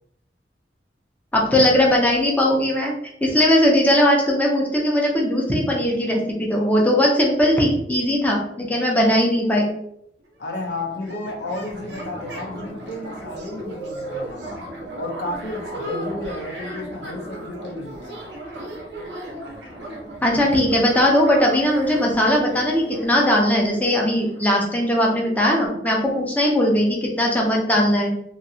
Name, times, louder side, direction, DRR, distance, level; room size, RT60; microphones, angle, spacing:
voice 1, 1.3-2.9 3.2-9.7 20.2-28.1, left 1 dB, 10° left, -2 dB, 0.6 m, -19 dB
sound 1, 10.2-10.3 10.5-25.1, right 1 dB, 85° right, 0.7 m, -36 dB
voice 2, 10.4-14.6 15.0-18.2, left 2 dB, 70° left, 1 dB, 0.6 m, -32 dB
2.9 x 2.6 x 2.7 m, 0.72 s
head